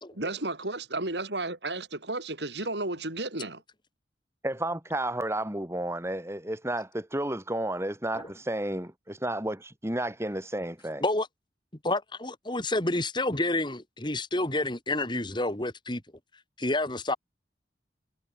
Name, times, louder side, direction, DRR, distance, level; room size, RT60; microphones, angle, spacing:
voice 1, 0.1-3.6, right 2 dB, 75° right, 6.1 m, -33 dB
voice 2, 4.4-11.0, right 1 dB, 15° right, 3.8 m, -32 dB
voice 3, 11.8-16.0 16.6-17.2, left 2 dB, 25° left, 3.0 m, -29 dB
head